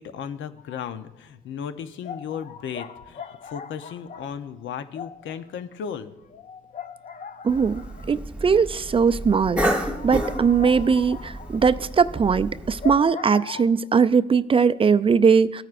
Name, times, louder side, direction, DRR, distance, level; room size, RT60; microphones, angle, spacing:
voice 1, 0.0-6.1, left 7 dB, 75° left, 10 dB, 0.8 m, -35 dB
sound 1, 0.6-1.0 1.3-1.4 2.0-8.4 8.8-8.9 9.1-9.2 9.5-13.6, left 7 dB, 40° left, 0.5 m, -40 dB
voice 2, 7.4-7.8 8.1-15.6, right 6 dB, 25° right, 13 dB, 0.4 m, -20 dB
Cough, 7.5-12.9, right 1 dB, 5° right, 1.3 m, -31 dB
18.0 x 9.1 x 2.5 m, 0.98 s
cardioid pair, 90°, 20 cm